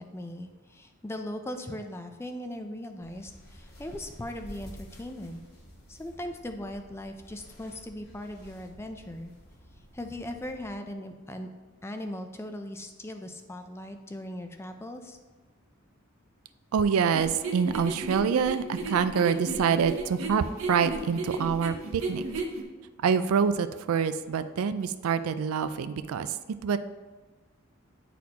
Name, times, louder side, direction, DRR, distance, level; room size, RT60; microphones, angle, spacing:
voice 1, 0.0-5.4 5.9-9.3 9.9-11.5 11.8-15.2, left 1 dB, 10° left, 6 dB, 0.4 m, -39 dB
sound 1, 3.0-10.7, equal, 50° left, 1.5 m, -50 dB
voice 2, 16.7-22.2 23.0-26.8, right 6 dB, 85° right, 12 dB, 0.4 m, -26 dB
sound 2, 17.1-22.6, right 3 dB, 65° right, 0.8 m, -34 dB
9.4 x 4.2 x 2.8 m, 1.3 s
head